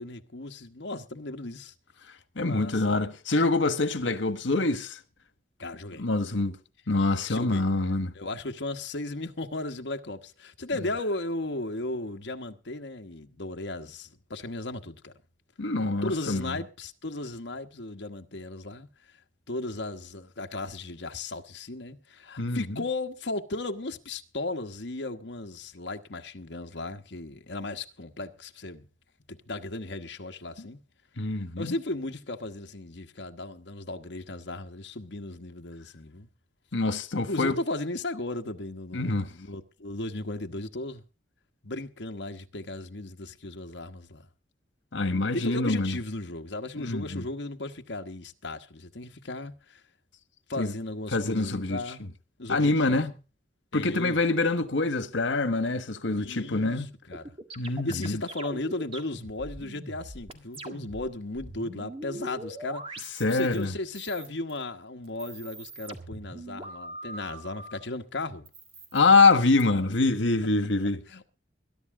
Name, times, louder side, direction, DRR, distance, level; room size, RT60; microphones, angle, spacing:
voice 1, 0.0-1.7 2.4-2.9 5.6-6.1 7.2-7.6 8.1-15.1 16.0-18.9 19.5-28.8 29.3-30.8 31.6-36.3 37.2-41.0 41.6-44.3 45.3-49.8 50.5-52.1 52.4-53.0 53.7-54.2 56.1-57.3 57.6-68.5 71.1-71.2, left 2 dB, 70° left, 1.3 m, -36 dB
voice 2, 2.3-5.0 6.0-6.6 6.9-8.1 15.6-16.6 22.4-22.6 30.6-30.7 31.2-31.7 36.7-37.5 38.9-39.3 44.9-46.0 46.8-47.2 50.6-50.7 51.1-51.8 52.5-53.1 53.7-56.9 57.6-58.2 63.2-63.7 68.9-71.0, left 3 dB, 90° left, 1.4 m, -25 dB
sound 1, 57.1-61.1 61.3-63.6 63.9-64.6 65.0-67.8 68.4-69.6, right 1 dB, 30° right, 1.8 m, -42 dB
21.5 x 11.0 x 3.7 m
head